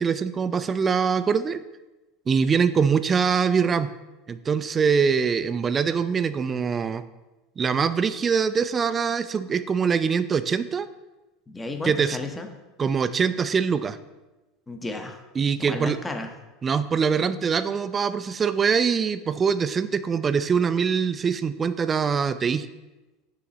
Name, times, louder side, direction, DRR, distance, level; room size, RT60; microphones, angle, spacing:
voice 1, 0.0-1.6 2.3-3.9 4.3-7.0 7.6-10.9 11.8-12.2 12.8-14.0 15.4-16.0 16.6-22.7, right 6 dB, 25° right, 13 dB, 0.3 m, -23 dB
voice 2, 11.5-12.5 14.7-15.2 15.6-16.3, left 3 dB, 15° left, 5 dB, 0.7 m, -33 dB
5.9 x 3.9 x 4.2 m, 1.1 s
figure-of-eight pair, 75°, 0 cm